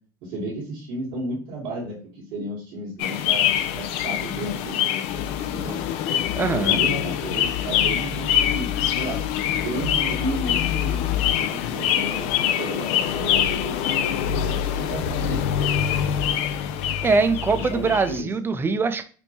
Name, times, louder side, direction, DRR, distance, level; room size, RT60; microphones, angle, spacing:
voice 1, 0.2-5.8 6.5-8.7 9.0-9.2 9.5-15.5 17.5-18.3, right 1 dB, 70° right, -7 dB, 1.4 m, -33 dB
sound 1, 3.0-18.2, left 10 dB, 65° left, 0.4 m, -24 dB
voice 2, 6.3-6.8 17.0-19.0, right 4 dB, 20° right, 9 dB, 0.4 m, -22 dB
4.4 x 2.2 x 2.8 m, 0.39 s
supercardioid pair, 95°, 11 cm